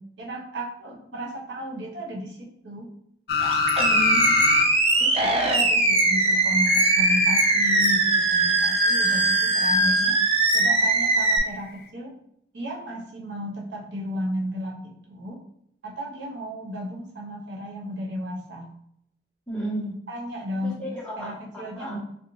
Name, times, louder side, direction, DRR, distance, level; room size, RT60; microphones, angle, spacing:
voice 1, 0.0-2.9 5.0-10.2 10.5-12.1 12.5-15.4 15.8-18.7 20.1-22.0, equal, 75° right, -1 dB, 0.7 m, -34 dB
sound 1, 3.3-4.7 5.0-5.1 6.7-9.8 11.5-11.6, left 6 dB, 55° left, 0.3 m, -28 dB
Animal, 3.4-11.4, right 2 dB, 30° right, 0.4 m, -21 dB
voice 2, 3.8-4.3 19.5-20.0 20.6-22.0, right 1 dB, 5° left, -6 dB, 0.9 m, -33 dB
3.4 x 2.5 x 3.0 m, 0.72 s
head